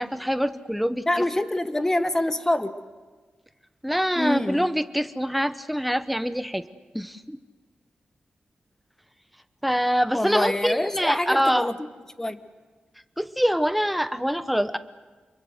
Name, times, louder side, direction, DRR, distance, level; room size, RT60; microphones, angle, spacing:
voice 1, 0.0-1.1 3.8-6.6 6.9-7.4 9.6-11.7 13.2-14.8, equal, ahead, 0.9 m, -24 dB
voice 2, 1.1-2.8 4.2-4.7 10.1-11.7 12.2-12.4, left 1 dB, 15° left, 1.2 m, -25 dB
28.0 x 22.5 x 8.0 m
wide cardioid pair, 105°, 3 cm